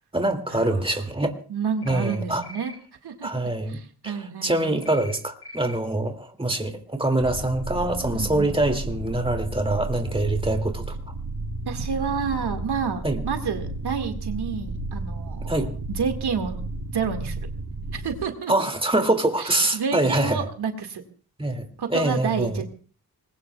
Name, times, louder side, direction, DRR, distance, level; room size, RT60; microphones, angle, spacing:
voice 1, 0.1-1.4 1.9-2.4 3.2-3.8 4.0-4.2 4.4-10.8 13.0-13.2 15.5-15.7 18.5-20.4 21.4-22.6, right 2 dB, 15° right, 2.4 m, -24 dB
voice 2, 1.5-2.7 3.0-3.3 3.7-4.8 8.1-8.5 11.6-15.6 15.9-16.6 16.9-17.5 17.9-18.5 19.4-21.0 21.8-22.7, right 6 dB, 85° right, 2.0 m, -29 dB
sound 1, 1.8-2.2 2.4-2.8 4.8-5.2 5.4-5.8, left 2 dB, 70° left, 7.2 m, -41 dB
sound 2, 7.2-18.2, right 2 dB, 50° right, 7.3 m, -33 dB
25.5 x 21.0 x 2.4 m
wide cardioid pair, 95°, 39 cm